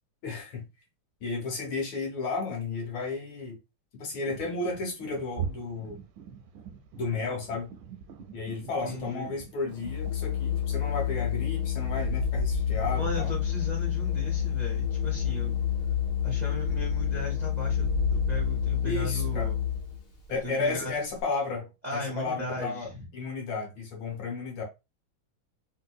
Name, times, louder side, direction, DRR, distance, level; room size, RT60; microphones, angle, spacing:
voice 1, 0.2-0.7 1.2-3.6 3.9-6.0 7.0-7.7 8.3-13.3 18.8-19.5 20.3-24.6, left 4 dB, 85° left, 1.9 m, -33 dB
sound 1, 4.3-10.1, right 7 dB, 80° right, 1.4 m, -42 dB
voice 2, 8.6-9.3 12.9-15.6 16.2-19.6 20.3-20.9 21.8-23.0, left 1 dB, 40° right, 0.6 m, -37 dB
Organ, 9.7-20.0, left 8 dB, 55° left, 1.4 m, -28 dB
3.8 x 2.7 x 2.2 m
omnidirectional pair, 2.2 m